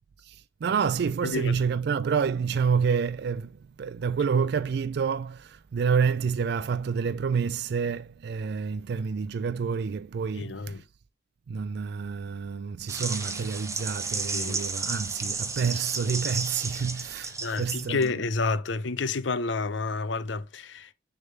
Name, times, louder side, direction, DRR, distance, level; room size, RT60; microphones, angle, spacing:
voice 1, 0.2-10.8 11.5-18.4, right 6 dB, 60° right, 0.3 m, -28 dB
voice 2, 1.2-1.6 10.4-10.8 14.3-14.6 17.4-20.9, left 3 dB, 80° left, 0.7 m, -30 dB
sound 1, 12.9-18.1, right 4 dB, 15° right, 1.1 m, -33 dB
6.5 x 3.5 x 5.6 m
head